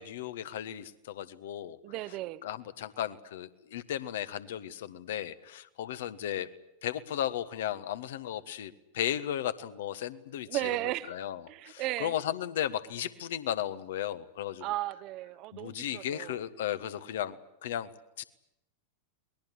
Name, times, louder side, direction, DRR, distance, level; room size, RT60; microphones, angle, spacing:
voice 1, 0.0-1.8 2.4-6.5 6.8-10.6 11.1-11.4 11.7-14.7 15.5-17.9 18.2-18.3, left 11 dB, 55° left, 1.4 m, -35 dB
voice 2, 1.8-2.4 10.5-11.2 11.5-12.2 14.6-16.4, right 17 dB, 40° right, 1.0 m, -35 dB
23.0 x 20.5 x 9.9 m
figure-of-eight pair, 90°, 0 cm